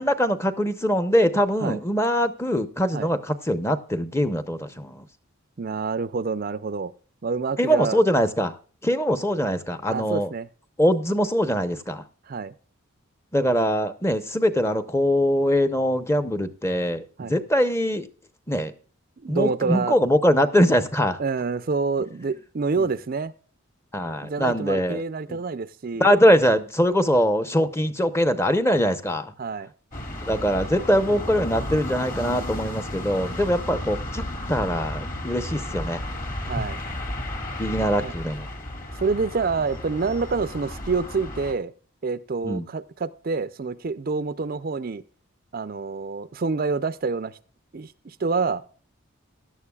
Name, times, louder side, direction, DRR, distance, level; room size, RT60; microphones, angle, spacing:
voice 1, 0.0-5.1 7.6-8.5 8.8-10.3 10.8-12.0 13.3-18.1 18.5-18.7 19.3-21.2 23.9-25.0 25.3-25.4 26.0-29.3 30.2-34.2 34.5-36.0 37.6-38.5 42.4-42.7, equal, 10° left, 11 dB, 0.7 m, -22 dB
voice 2, 5.6-6.9 7.2-8.0 9.9-10.5 12.3-12.5 17.2-17.4 19.2-20.0 21.2-23.3 24.2-26.2 29.4-29.7 36.4-36.8 37.8-38.1 39.0-41.7 42.0-45.0 45.5-47.4 47.7-48.6, right 4 dB, 40° right, 14 dB, 0.4 m, -27 dB
sound 1, 29.9-41.5, left 1 dB, 40° left, 2.2 m, -33 dB
16.5 x 11.5 x 2.3 m, 0.40 s
head